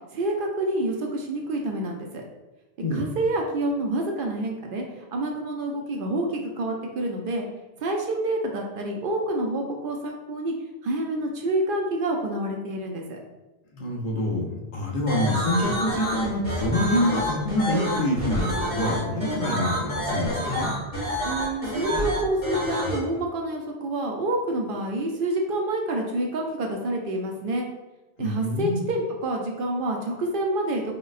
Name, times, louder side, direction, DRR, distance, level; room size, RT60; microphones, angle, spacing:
voice 1, 0.1-2.2 2.9-7.5 7.8-10.5 10.8-13.2 21.2-27.7 28.2-31.0, right 1 dB, 60° right, 1 dB, 0.7 m, -28 dB
voice 2, 13.7-20.7 28.2-28.9, left 1 dB, 55° left, -1 dB, 0.8 m, -26 dB
sound 1, 15.1-23.0, equal, 35° left, 1.6 m, -28 dB
5.0 x 2.1 x 2.4 m, 1.1 s
omnidirectional pair, 1.1 m